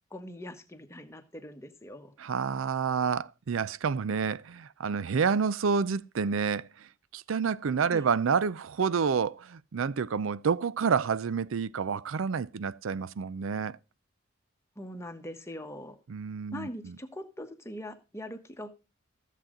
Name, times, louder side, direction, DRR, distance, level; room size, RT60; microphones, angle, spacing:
voice 1, 0.1-2.1 7.9-8.1 14.8-16.0 16.5-18.7, equal, 15° left, 1.2 m, -42 dB
voice 2, 2.2-13.8 16.1-17.0, right 6 dB, 80° right, 0.5 m, -29 dB
14.0 x 7.4 x 3.8 m
head